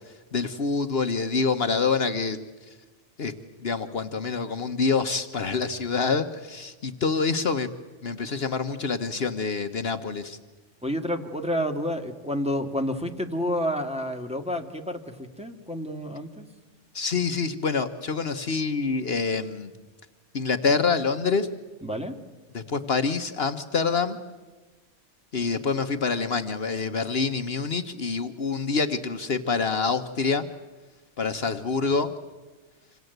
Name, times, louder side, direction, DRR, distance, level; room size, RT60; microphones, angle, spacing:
voice 1, 0.3-2.4 3.2-3.3 3.6-7.7 8.0-10.4 16.9-19.7 20.3-21.5 22.5-24.2 25.3-30.5 31.2-32.1, left 4 dB, 55° left, 7 dB, 1.3 m, -26 dB
voice 2, 10.8-16.5 21.8-22.2, equal, 5° right, 3 dB, 2.0 m, -29 dB
27.0 x 26.5 x 8.1 m, 1.2 s
omnidirectional pair, 1.2 m